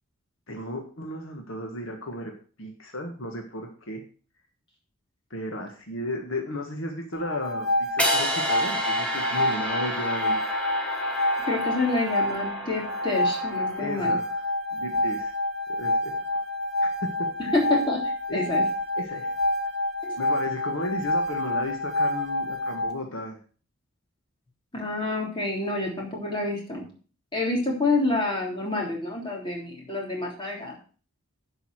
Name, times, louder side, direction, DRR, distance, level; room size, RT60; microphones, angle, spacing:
voice 1, 0.5-2.3 2.6-4.0 5.3-10.4 13.8-14.4 14.7-15.3 15.7-16.1 16.8-17.5 18.3-18.6 19.0-19.3 20.2-23.4, left 1 dB, 65° left, 2 dB, 1.7 m, -34 dB
sound 1, 7.1-22.9, left 1 dB, 85° left, 1.9 m, -28 dB
sound 2, 8.0-14.1, equal, 5° left, 1.4 m, -31 dB
voice 2, 11.4-14.2 17.5-18.0 18.3-18.6 20.0-20.1 24.7-26.8 27.3-30.7, left 2 dB, 25° left, -2 dB, 3.4 m, -28 dB
11.0 x 5.4 x 6.3 m, 0.39 s
head